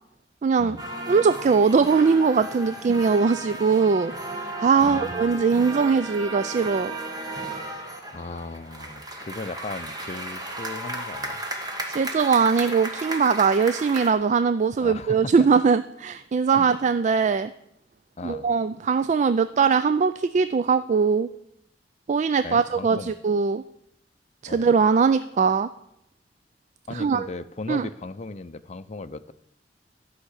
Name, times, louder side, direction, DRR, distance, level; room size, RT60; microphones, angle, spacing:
voice 1, 0.4-0.8 1.1-4.1 4.4-6.9 11.9-17.5 18.2-21.3 22.1-23.6 24.4-25.7 26.9-27.3 27.7-27.9, right 5 dB, 45° right, 13 dB, 0.3 m, -21 dB
sound 1, 0.8-14.1, right 1 dB, 25° right, 1.6 m, -34 dB
voice 2, 4.8-5.4 8.1-11.4 14.8-15.5 16.5-16.8 18.2-18.5 22.4-23.2 24.5-24.7 26.9-29.3, left 3 dB, 40° left, 10 dB, 0.6 m, -37 dB
13.0 x 5.8 x 8.2 m, 0.80 s
head